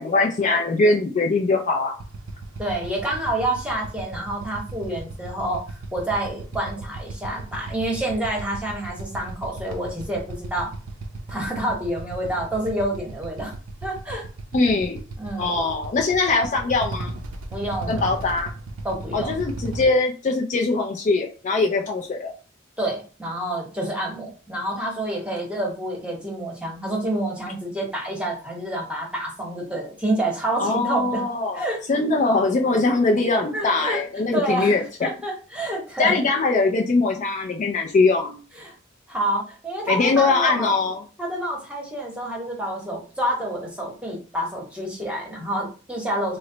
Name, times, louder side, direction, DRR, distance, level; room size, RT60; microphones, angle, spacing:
voice 1, 0.0-1.9 14.5-15.0 15.4-17.1 17.9-18.5 19.1-22.3 30.6-31.6 31.9-35.1 36.0-38.4 39.9-41.0, left 3 dB, 35° left, 1 dB, 0.3 m, -21 dB
Motorcycle / Idling, 1.9-19.8, right 2 dB, 85° right, 0.5 m, -36 dB
voice 2, 2.6-10.7 11.3-13.5 13.8-14.2 15.2-15.5 17.5-18.1 18.8-19.4 22.8-31.2 31.5-31.8 33.5-34.0 34.3-36.2 38.5-38.7 39.1-40.7 41.2-46.4, right 1 dB, 5° right, -2 dB, 0.9 m, -28 dB
3.1 x 2.0 x 3.7 m, 0.37 s
head